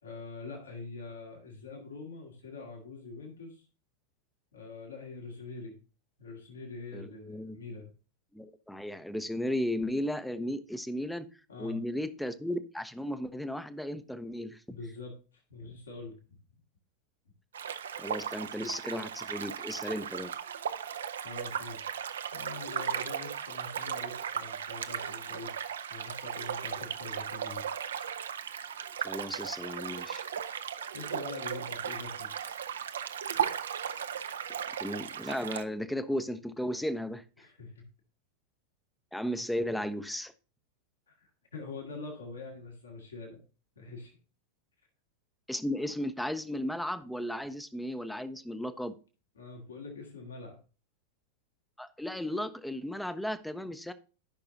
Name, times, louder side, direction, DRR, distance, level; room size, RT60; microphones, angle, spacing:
voice 1, 0.0-3.7 4.5-5.7 6.2-7.9 11.5-11.8 14.7-16.2 21.2-21.9 22.3-25.5 25.9-27.8 30.9-32.3 37.4-37.8 41.2-43.4 43.8-44.1 49.4-50.6, left 3 dB, 70° left, 2.1 m, -44 dB
voice 2, 6.9-7.6 8.3-11.3 11.6-14.8 18.0-20.3 29.0-30.2 34.8-37.2 39.1-40.3 45.5-49.0 51.8-53.9, left 1 dB, 5° left, 0.6 m, -35 dB
sound 1, 17.5-35.6, right 8 dB, 65° right, 0.5 m, -36 dB
14.0 x 5.7 x 2.7 m
figure-of-eight pair, 90°, 0 cm